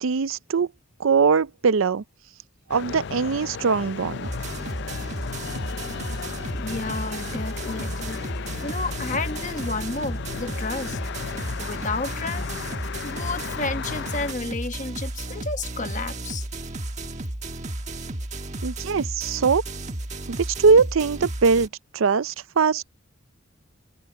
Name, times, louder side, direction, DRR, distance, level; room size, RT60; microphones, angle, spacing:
voice 1, 0.0-0.7 1.0-2.0 2.7-4.3 18.6-19.6 20.3-21.7 21.9-22.9, right 5 dB, 75° right, 0.5 m, -21 dB
sound 1, 2.7-14.3, left 6 dB, 55° left, 0.4 m, -35 dB
sound 2, 4.2-21.7, right 1 dB, 35° right, 1.4 m, -33 dB
voice 2, 6.5-8.2 8.6-11.0 11.6-12.5 13.0-16.4, left 3 dB, 35° left, 1.1 m, -31 dB
head